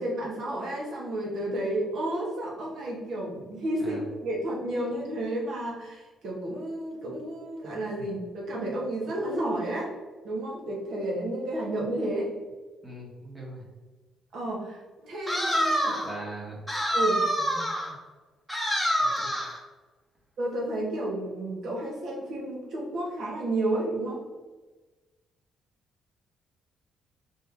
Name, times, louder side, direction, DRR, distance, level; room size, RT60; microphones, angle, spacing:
voice 1, 0.0-9.9 10.2-12.3 14.3-16.0 16.9-17.2 20.4-24.2, right 1 dB, 70° right, -2 dB, 1.4 m, -31 dB
voice 2, 12.8-13.6 16.0-16.6 17.5-17.7 19.0-19.3, right 2 dB, 25° right, -3 dB, 1.5 m, -40 dB
sound 1, 15.3-16.2 16.7-17.9 18.5-19.6, equal, 5° right, 1.3 m, -26 dB
4.3 x 2.8 x 3.4 m, 1.2 s
cardioid pair, 90°, 0 cm